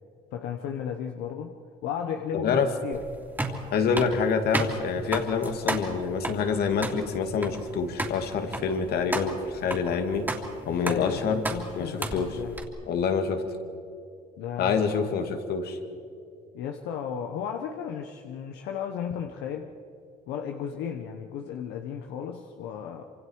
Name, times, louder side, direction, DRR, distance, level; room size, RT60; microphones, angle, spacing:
voice 1, 0.3-3.0 10.6-12.5 14.4-15.1 16.5-19.7 20.3-23.0, left 8 dB, 90° left, 4 dB, 1.3 m, -34 dB
sound 1, 2.9-12.6, right 1 dB, 10° right, 2.9 m, -34 dB
voice 2, 3.7-10.3 10.7-11.4 11.7-12.3 12.9-13.4 14.6-15.8, left 6 dB, 70° left, 6 dB, 2.4 m, -26 dB
26.5 x 26.0 x 4.8 m, 2.5 s
cardioid pair, 110°, 17 cm